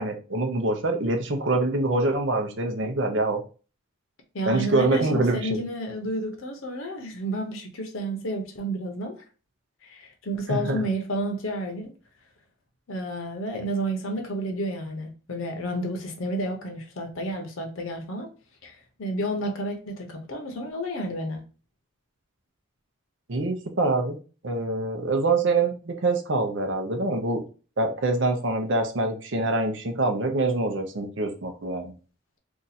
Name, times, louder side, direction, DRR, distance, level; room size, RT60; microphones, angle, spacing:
voice 1, 0.0-3.4 4.4-5.6 10.5-10.8 23.3-24.2 24.4-27.4 27.8-31.9, right 2 dB, 60° right, 0.6 m, -25 dB
voice 2, 4.3-9.2 9.8-11.9 12.9-18.3 18.6-21.4, right 1 dB, 75° left, 0.7 m, -31 dB
2.7 x 2.4 x 4.0 m
head